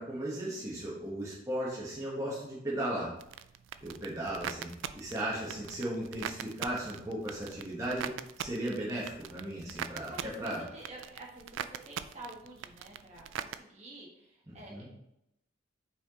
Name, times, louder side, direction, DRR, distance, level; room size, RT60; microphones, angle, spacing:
voice 1, 0.0-3.1 3.8-8.1 8.4-10.6 14.5-14.9, right 1 dB, 15° right, -7 dB, 1.3 m, -36 dB
sound 1, 3.2-13.6, right 9 dB, 75° right, 0.3 m, -42 dB
voice 2, 9.8-14.9, right 2 dB, 35° right, -4 dB, 1.4 m, -49 dB
5.9 x 4.4 x 3.8 m, 0.81 s
head